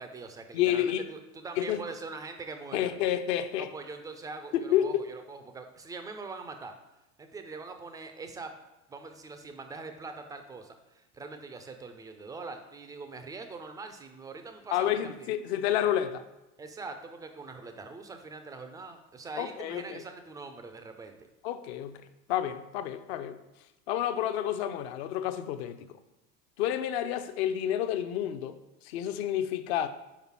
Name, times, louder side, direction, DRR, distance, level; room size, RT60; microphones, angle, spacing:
voice 1, 0.0-2.9 3.6-6.8 7.2-8.6 8.9-15.3 16.6-21.2, right 3 dB, 10° right, 0.4 m, -43 dB
voice 2, 0.5-1.1 1.6-1.8 2.7-3.7 4.5-5.0 14.7-16.2 19.4-20.0 21.4-22.0 22.3-23.4 23.9-25.9 26.6-28.5 28.8-29.9, left 11 dB, 45° left, 0.6 m, -29 dB
5.8 x 5.1 x 4.6 m
figure-of-eight pair, 75°, 44 cm